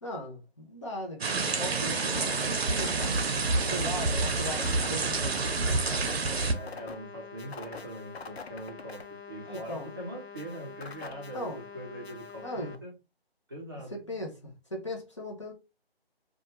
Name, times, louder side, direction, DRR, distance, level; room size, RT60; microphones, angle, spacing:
voice 1, 0.0-3.0 3.6-5.5 9.4-9.9 11.3-11.6 12.4-12.8 13.9-15.5, left 1 dB, 30° left, 0.6 m, -38 dB
sound 1, 1.2-6.5, right 3 dB, 80° right, 0.7 m, -28 dB
sound 2, 1.8-12.8, left 5 dB, 85° left, 0.6 m, -45 dB
voice 2, 6.4-11.5 11.7-12.9 13.5-13.9, right 1 dB, 25° right, 0.5 m, -42 dB
2.6 x 2.2 x 2.9 m
figure-of-eight pair, 160°, 31 cm